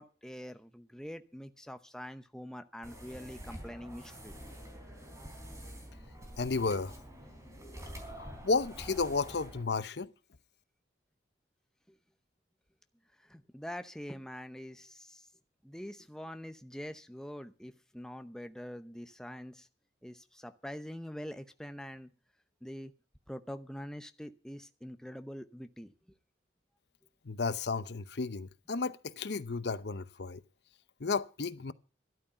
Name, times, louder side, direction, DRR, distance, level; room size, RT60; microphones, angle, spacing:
voice 1, 0.0-4.3 13.3-15.2 15.6-19.7 20.0-22.1 22.6-22.9 23.3-25.9, equal, 5° left, 0.8 m, -44 dB
sound 1, 2.8-9.6, equal, 15° right, 3.9 m, -47 dB
voice 2, 6.4-6.9 8.0-10.1 27.2-30.4 31.0-31.7, left 4 dB, 65° left, 0.8 m, -33 dB
13.0 x 11.5 x 5.7 m
head